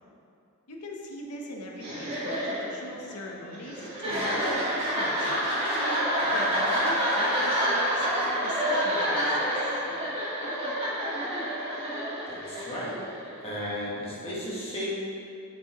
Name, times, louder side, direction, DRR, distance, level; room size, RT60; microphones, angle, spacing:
voice 1, 0.7-5.4 6.3-9.7, left 1 dB, 85° left, 0 dB, 0.9 m, -40 dB
sound 1, 1.8-13.5, equal, 25° right, 1.5 m, -28 dB
voice 2, 12.3-13.0 13.4-15.1, left 1 dB, 25° left, -6 dB, 1.4 m, -34 dB
7.3 x 6.1 x 3.0 m, 2.5 s
head